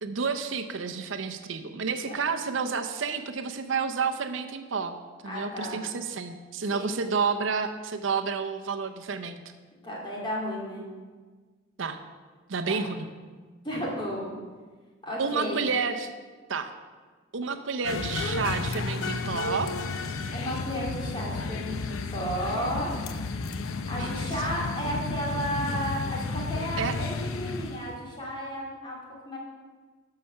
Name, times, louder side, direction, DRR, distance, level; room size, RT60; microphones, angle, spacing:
voice 1, 0.0-5.0 5.2-9.4 11.8-12.0 12.5-13.1 15.2-16.1 16.5-16.7 17.3-19.7 24.0-24.2 26.8-27.0, right 5 dB, 70° right, 7 dB, 0.6 m, -30 dB
voice 2, 5.3-5.8 6.7-7.0 9.8-10.8 12.7-12.8 13.6-14.3 15.0-15.6 20.3-22.9 23.9-29.0 29.2-29.4, equal, 25° left, -3 dB, 2.5 m, -33 dB
sound 1, 17.8-28.0, left 3 dB, 90° left, 0.6 m, -32 dB
13.0 x 5.8 x 5.6 m, 1.4 s
head